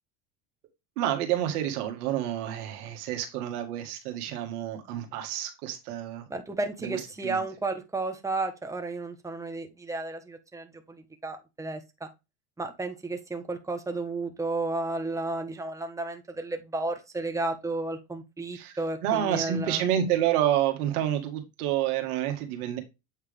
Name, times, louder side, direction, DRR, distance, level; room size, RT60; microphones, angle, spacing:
voice 1, 1.0-6.3 6.8-7.4 18.5-22.8, right 11 dB, 75° right, 1.7 m, -29 dB
voice 2, 6.3-12.1 12.6-19.8, right 2 dB, 5° right, 1.2 m, -33 dB
8.2 x 3.4 x 3.4 m
hypercardioid pair, 90°, 44 cm